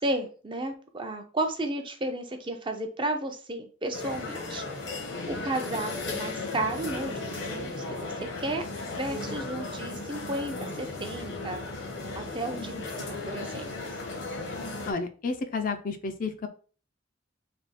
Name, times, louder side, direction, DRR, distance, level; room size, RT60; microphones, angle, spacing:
voice 1, 0.0-4.6 5.3-11.6 12.1-13.9, right 1 dB, 25° right, 5 dB, 0.6 m, -33 dB
sound 1, 3.9-14.9, left 3 dB, 85° left, 1.2 m, -36 dB
voice 2, 14.9-16.5, left 4 dB, 45° left, 8 dB, 0.4 m, -31 dB
3.4 x 2.4 x 4.1 m, 0.38 s
head